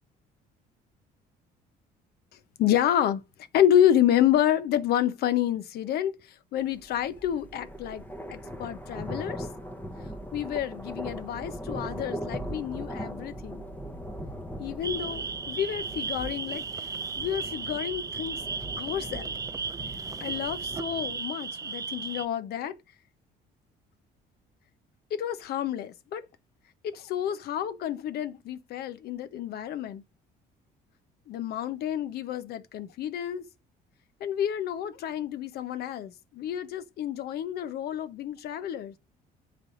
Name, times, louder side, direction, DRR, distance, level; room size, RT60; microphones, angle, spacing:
voice 1, 2.3-3.2 3.5-8.0 8.3-9.5 10.3-13.7 14.6-16.6 17.2-18.4 18.8-19.3 20.2-22.8 25.1-26.2 26.8-30.0 31.3-33.5 34.2-38.9, left 10 dB, 70° left, 0.9 m, -29 dB
sound 1, 6.7-21.2, equal, 10° left, 0.9 m, -40 dB
sound 2, 14.8-22.3, right 5 dB, 20° right, 0.4 m, -35 dB
9.7 x 3.4 x 3.9 m
cardioid pair, 110°, 17 cm